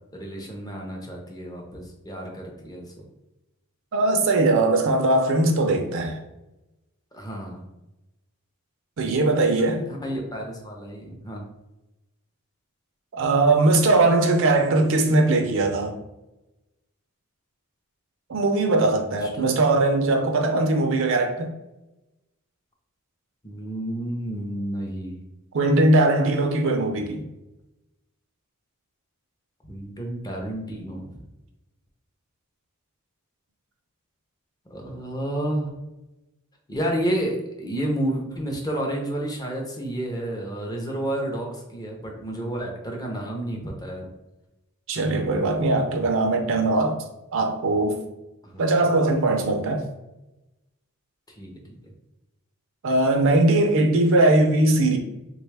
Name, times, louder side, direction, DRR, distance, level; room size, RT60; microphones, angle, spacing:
voice 1, 0.1-2.8 7.1-7.6 9.7-11.4 19.1-19.6 23.4-25.2 29.6-31.1 34.7-35.7 36.7-44.1 48.4-48.6 51.3-51.8, right 1 dB, 15° left, 0 dB, 0.5 m, -30 dB
voice 2, 3.9-6.2 9.0-9.8 13.1-15.9 18.3-21.5 25.5-27.2 44.9-47.0 47.3-48.0 48.6-49.8 52.8-55.0, right 2 dB, 60° right, 4 dB, 0.4 m, -20 dB
3.2 x 2.2 x 3.2 m, 0.97 s
head